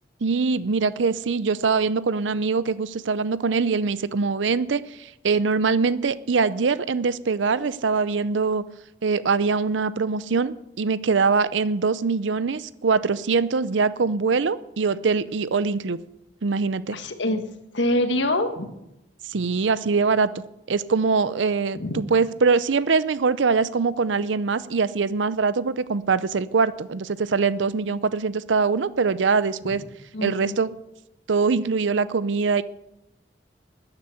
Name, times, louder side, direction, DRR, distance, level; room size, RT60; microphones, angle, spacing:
voice 1, 0.2-8.6 9.0-16.0 16.4-17.0 19.3-20.4 20.7-29.8 30.2-30.7 31.3-32.6, right 4 dB, 85° right, 16 dB, 0.6 m, -23 dB
voice 2, 16.9-17.4 17.7-18.7 21.7-22.0 30.1-30.6, left 1 dB, 80° left, 8 dB, 1.5 m, -25 dB
13.5 x 9.9 x 7.1 m, 0.89 s
head